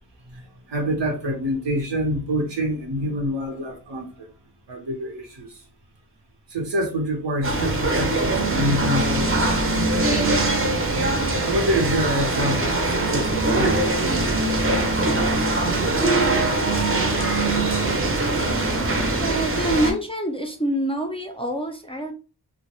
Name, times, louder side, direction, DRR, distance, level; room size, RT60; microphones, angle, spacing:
voice 1, 0.2-4.3 4.7-5.6 6.5-10.4 11.4-16.5, equal, 85° right, 2 dB, 0.8 m, -28 dB
sound 1, 7.4-19.9, right 2 dB, 30° right, 0.6 m, -22 dB
voice 2, 19.2-22.1, right 1 dB, 15° left, 3 dB, 0.3 m, -26 dB
2.2 x 2.1 x 2.9 m, 0.35 s
wide cardioid pair, 65°, 42 cm